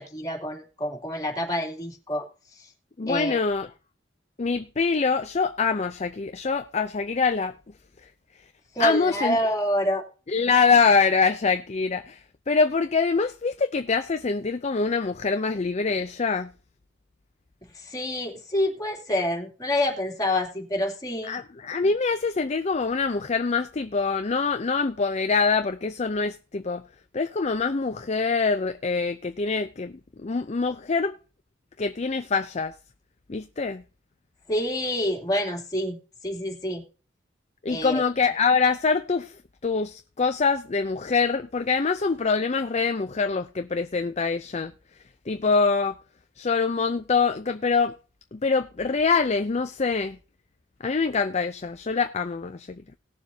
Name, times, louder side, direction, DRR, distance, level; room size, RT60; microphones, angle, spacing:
voice 1, 0.0-2.3 2.6-2.7 3.1-3.4 8.7-10.0 17.7-21.4 34.5-36.8 37.7-38.0, left 1 dB, 20° left, 2.9 m, -27 dB
voice 2, 3.0-3.7 4.4-7.5 8.8-9.4 10.3-16.5 21.3-26.8 27.1-31.2 31.8-32.7 33.3-33.8 37.6-39.3 39.6-44.7 45.3-46.0 46.4-47.9 48.3-50.2 50.8-52.8, left 4 dB, 35° left, 0.5 m, -24 dB
19.0 x 7.1 x 2.8 m
head